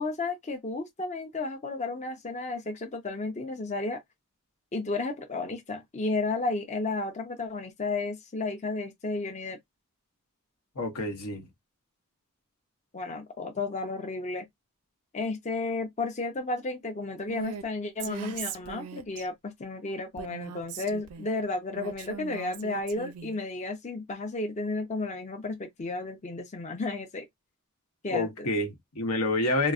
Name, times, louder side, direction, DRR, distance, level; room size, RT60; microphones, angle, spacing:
voice 1, 0.0-4.0 4.7-9.6 12.9-14.5 15.1-27.3 28.0-28.3, left 3 dB, 30° left, 0.6 m, -33 dB
voice 2, 10.7-11.5 28.1-29.7, left 2 dB, 85° left, 1.0 m, -28 dB
Female speech woman speaking, 17.3-17.6 18.0-19.3 20.2-21.3 21.7-23.4, right 7 dB, 90° right, 0.4 m, -40 dB
3.8 x 2.0 x 2.4 m
head